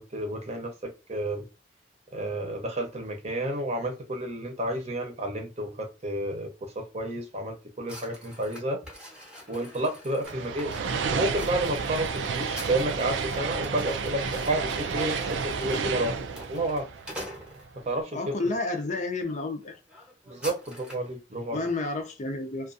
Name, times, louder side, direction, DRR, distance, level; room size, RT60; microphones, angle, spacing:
voice 1, 0.0-1.4 2.1-8.8 9.5-10.7 11.1-16.1 16.5-16.9 17.9-18.2 20.3-21.6, right 1 dB, 40° right, 0.7 m, -31 dB
sound 1, 7.9-18.0 18.6-18.8 19.2-19.4 19.6-21.1, equal, 5° right, 0.8 m, -45 dB
sound 2, 10.2-17.7, right 5 dB, 85° right, 0.4 m, -31 dB
voice 2, 18.1-19.8 21.5-22.7, left 2 dB, 40° left, 0.5 m, -30 dB
2.5 x 2.3 x 2.5 m
head